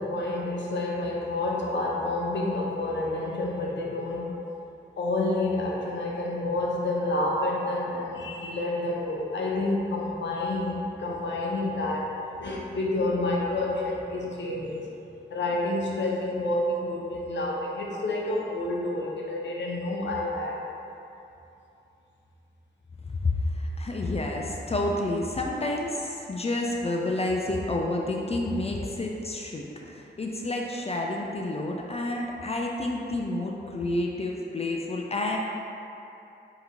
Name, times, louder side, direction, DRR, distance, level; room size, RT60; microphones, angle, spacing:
voice 1, 0.0-4.4 5.0-12.1 12.4-14.9 15.3-20.6, left 2 dB, 80° left, -2 dB, 0.7 m, -29 dB
voice 2, 23.2-35.4, left 2 dB, 35° left, 0 dB, 0.4 m, -29 dB
3.8 x 2.8 x 4.3 m, 2.8 s
cardioid pair, 65°, 19 cm